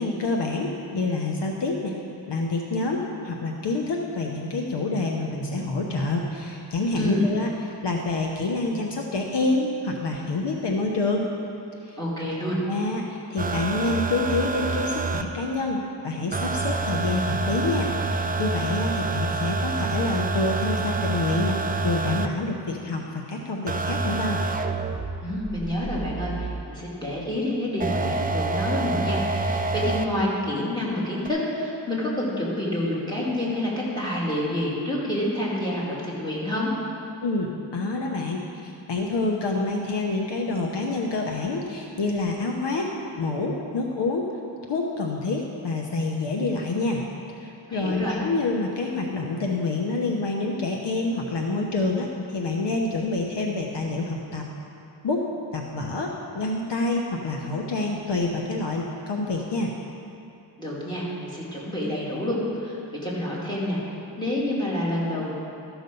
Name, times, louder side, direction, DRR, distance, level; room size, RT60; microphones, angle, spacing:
voice 1, 0.0-1.9 2.3-7.5 7.8-11.2 11.8-12.0 12.7-21.6 21.8-24.4 37.2-42.9 43.2-44.3 44.7-47.0 47.4-54.4 55.0-55.2 55.5-59.7, left 3 dB, 65° left, 1 dB, 1.0 m, -27 dB
voice 2, 7.0-7.3 12.0-12.6 25.2-36.7 47.7-48.2 60.6-63.8 64.2-65.3, left 1 dB, 10° left, -6 dB, 2.8 m, -28 dB
sound 1, 13.4-15.2 16.3-22.3 23.7-26.6 27.8-30.0 31.2-31.3, right 3 dB, 20° right, 0.4 m, -27 dB
13.5 x 6.2 x 5.4 m, 2.7 s
cardioid pair, 90°, 45 cm